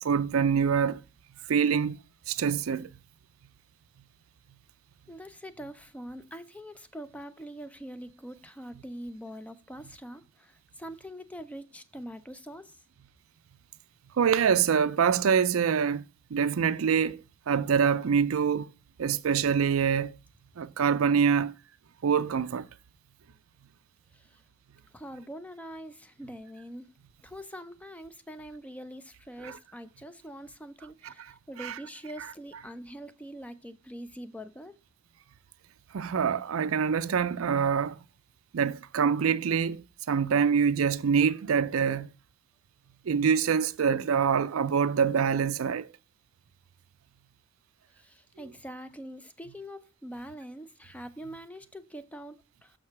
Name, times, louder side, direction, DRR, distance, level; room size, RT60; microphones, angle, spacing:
voice 1, 0.0-1.0 1.5-2.0 2.3-2.9 14.2-16.0 16.3-17.2 17.5-18.7 19.0-20.1 20.6-21.5 22.0-22.7 29.4-29.5 31.6-31.8 35.9-38.0 38.5-42.1 43.1-45.9, right 7 dB, 80° right, 0.4 m, -25 dB
voice 2, 5.1-12.8 24.1-24.4 24.9-26.9 27.2-34.8 47.9-52.8, equal, 5° left, 0.5 m, -44 dB
6.6 x 4.7 x 5.8 m
head